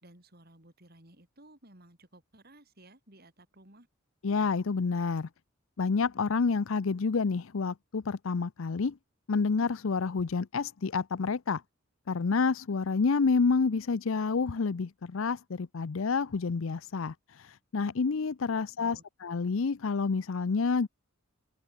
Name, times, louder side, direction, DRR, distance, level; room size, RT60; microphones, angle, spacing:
voice 1, 0.0-3.9 18.6-19.1, right 1 dB, 45° right, 5.3 m, -56 dB
voice 2, 4.2-5.3 5.8-9.0 9.3-11.6 12.1-20.9, left 4 dB, 65° left, 0.5 m, -29 dB
open air
head